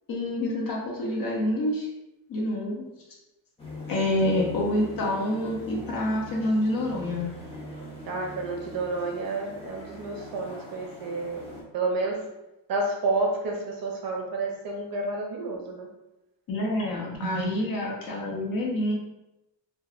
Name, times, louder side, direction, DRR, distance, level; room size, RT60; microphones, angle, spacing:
voice 1, 0.1-1.9 2.3-2.8 3.9-7.2 16.5-18.9, left 1 dB, 45° left, -2 dB, 0.8 m, -27 dB
sound 1, 3.6-11.6, equal, 15° left, 0.6 m, -41 dB
voice 2, 8.1-11.4 11.7-12.3 12.7-15.9 17.2-17.5 18.3-18.4, right 3 dB, 50° right, 0 dB, 0.6 m, -30 dB
3.0 x 2.2 x 2.4 m, 0.94 s
cardioid pair, 125°, 46 cm